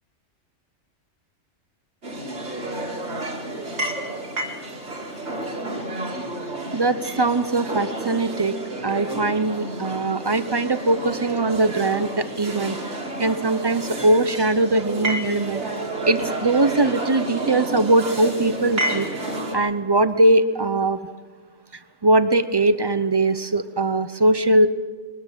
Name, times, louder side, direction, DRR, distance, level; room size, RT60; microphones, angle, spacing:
sound 1, 2.0-19.6, right 1 dB, 65° right, 2.6 m, -30 dB
voice 1, 6.7-8.5 8.8-12.8 13.2-15.6 16.1-19.1 19.5-21.0 22.0-24.7, right 2 dB, 25° right, 12 dB, 0.7 m, -21 dB
22.0 x 13.5 x 9.0 m, 1.4 s
omnidirectional pair, 1.2 m